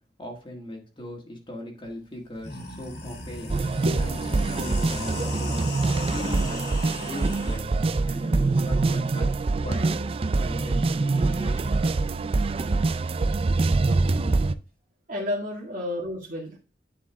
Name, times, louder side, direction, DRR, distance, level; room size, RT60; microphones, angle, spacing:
voice 1, 0.2-3.6 4.0-5.7 6.1-6.8 7.0-7.7 8.0-10.0 10.2-11.8, left 1 dB, 30° left, 0 dB, 1.7 m, -39 dB
sound 1, 1.9-2.0 2.3-7.6, left 1 dB, 65° left, 2.4 m, -37 dB
sound 2, 3.5-14.6, right 3 dB, 35° right, 0.4 m, -24 dB
voice 2, 15.1-16.6, left 1 dB, 50° right, -3 dB, 1.8 m, -31 dB
9.8 x 4.7 x 3.4 m, 0.33 s
head